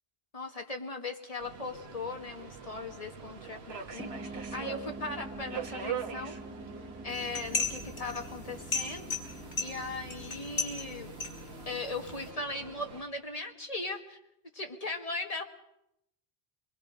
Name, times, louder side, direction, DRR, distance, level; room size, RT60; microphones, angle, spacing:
voice 1, 0.3-6.4 7.0-9.1 9.6-11.2 11.7-14.2 14.5-15.4, left 2 dB, 35° left, 3 dB, 1.9 m, -38 dB
Subway metro underground, 1.4-13.0, right 7 dB, 80° right, 1.4 m, -44 dB
sound 1, 4.0-12.1, right 2 dB, 10° right, 0.8 m, -46 dB
sound 2, 7.1-12.3, left 4 dB, 90° left, 3.1 m, -37 dB
24.5 x 21.5 x 5.1 m, 0.80 s
omnidirectional pair, 1.1 m